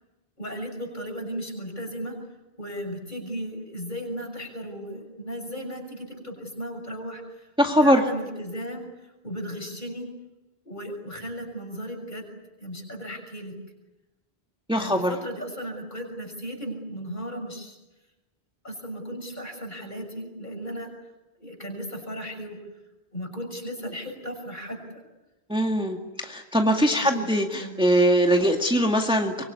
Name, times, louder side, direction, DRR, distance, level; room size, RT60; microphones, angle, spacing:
voice 1, 0.4-2.2 2.6-10.1 10.6-12.3 12.6-13.6 14.7-17.8 18.6-20.9 21.4-22.6 23.1-25.0 27.0-27.3 27.6-27.8, equal, 50° left, 4 dB, 6.6 m, -36 dB
voice 2, 7.6-8.0 14.7-15.1 25.5-29.4, equal, 5° right, 3 dB, 2.0 m, -21 dB
24.5 x 23.0 x 9.6 m, 1.0 s
omnidirectional pair, 1.0 m